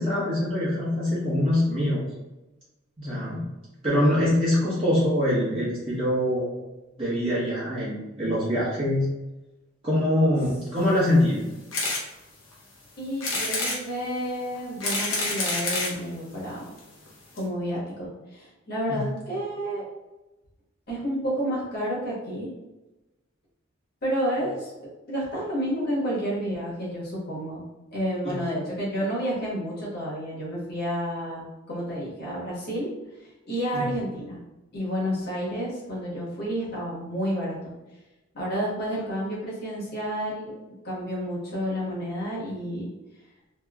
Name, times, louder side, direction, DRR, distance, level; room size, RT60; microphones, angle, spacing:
voice 1, 0.0-2.0 3.0-3.4 3.8-6.5 7.0-9.0 9.8-11.4 18.9-19.0 28.2-28.3 33.7-33.8, left 1 dB, 30° right, -10 dB, 1.0 m, -24 dB
sound 1, 11.7-12.0 12.5-12.6 13.2-13.8 14.6-16.0 16.8-16.9 17.1-17.2 17.4-17.5, left 2 dB, 80° left, 0.9 m, -27 dB
voice 2, 13.0-16.6 17.4-19.8 20.9-22.5 24.0-24.7 25.1-27.7 27.9-32.9 33.5-34.4 34.7-37.7 38.3-40.5 40.8-42.9, equal, 50° left, -7 dB, 1.2 m, -30 dB
3.0 x 2.8 x 2.3 m, 1.0 s
head